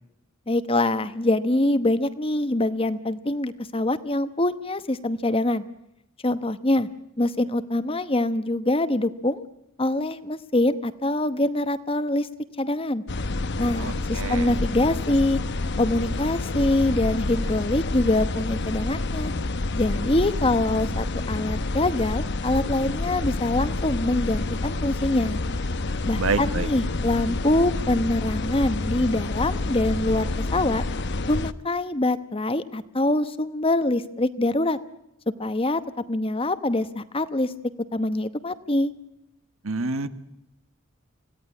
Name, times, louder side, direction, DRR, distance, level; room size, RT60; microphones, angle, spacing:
voice 1, 0.5-5.6 6.2-6.9 7.2-9.5 9.8-12.3 12.6-13.0 13.6-15.4 15.8-19.3 19.7-25.4 26.0-30.8 31.3-34.8 35.4-35.8 36.1-37.5 37.9-38.9, left 1 dB, 25° left, 12 dB, 1.0 m, -24 dB
sound 1, 13.1-31.5, left 2 dB, 55° left, 0.9 m, -28 dB
voice 2, 13.8-14.5 26.1-26.7 39.6-40.1, right 3 dB, 80° right, 11 dB, 1.4 m, -27 dB
26.0 x 17.0 x 9.8 m, 0.85 s
head